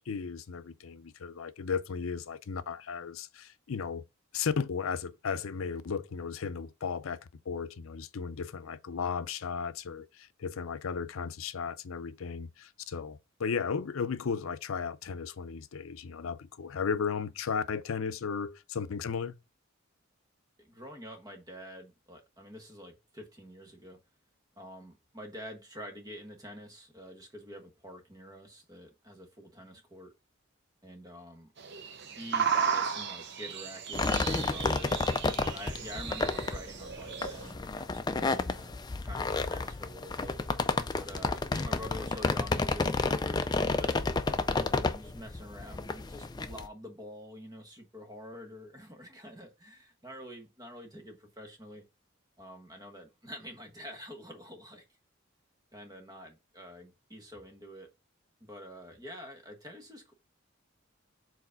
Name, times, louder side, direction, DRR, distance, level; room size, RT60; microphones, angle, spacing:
voice 1, 0.0-4.0 4.3-7.2 7.5-19.4, left 6 dB, 80° left, 0.5 m, -35 dB
voice 2, 20.6-24.0 24.6-30.1 30.8-31.5 32.2-34.9 35.4-40.4 40.9-44.0 44.3-51.9 52.4-54.8 55.7-57.9 58.4-60.1, equal, 20° right, 1.2 m, -47 dB
sound 1, 31.6-37.5, right 7 dB, 55° right, 0.7 m, -34 dB
sound 2, 33.9-46.7, left 3 dB, 20° left, 0.4 m, -31 dB
4.8 x 4.1 x 4.9 m
head